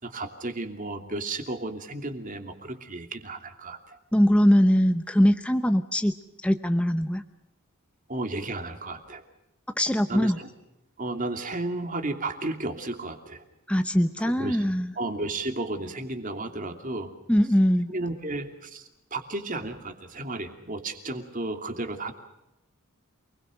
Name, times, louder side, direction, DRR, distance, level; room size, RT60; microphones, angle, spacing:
voice 1, 0.0-4.0 8.1-9.2 10.1-10.5 11.0-13.4 14.2-14.6 15.0-17.1 17.9-22.1, right 2 dB, 40° right, 6 dB, 2.8 m, -33 dB
voice 2, 4.1-6.1 6.4-7.2 9.8-10.4 13.7-14.9 17.3-17.9, equal, 5° left, 9 dB, 0.8 m, -21 dB
28.0 x 21.0 x 6.5 m, 0.90 s
head